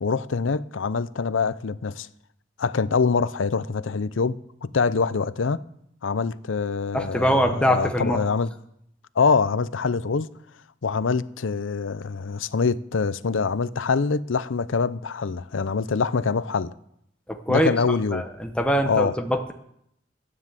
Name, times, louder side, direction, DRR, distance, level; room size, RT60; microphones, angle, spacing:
voice 1, 0.0-2.1 2.6-5.6 6.0-8.5 9.2-10.3 10.8-16.7 17.5-18.2 18.9-19.2, left 5 dB, 85° left, 0.6 m, -24 dB
voice 2, 6.9-8.2 17.3-17.7 18.1-19.5, equal, 5° left, 0.9 m, -23 dB
13.0 x 9.7 x 7.5 m
head